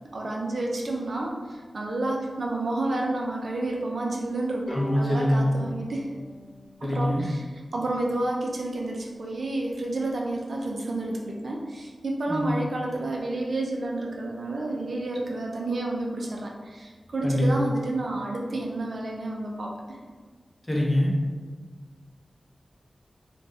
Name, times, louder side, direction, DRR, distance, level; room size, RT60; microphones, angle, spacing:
voice 1, 0.1-6.1 6.8-19.7, right 2 dB, 65° right, -1 dB, 0.5 m, -30 dB
Bowed string instrument, 4.7-8.0, left 1 dB, 40° left, 1.0 m, -42 dB
voice 2, 4.7-5.5 6.8-7.2 12.3-12.5 17.2-17.5 20.7-21.1, left 1 dB, 15° left, -4 dB, 0.6 m, -24 dB
3.3 x 2.3 x 2.6 m, 1.4 s
wide cardioid pair, 110°, 0 cm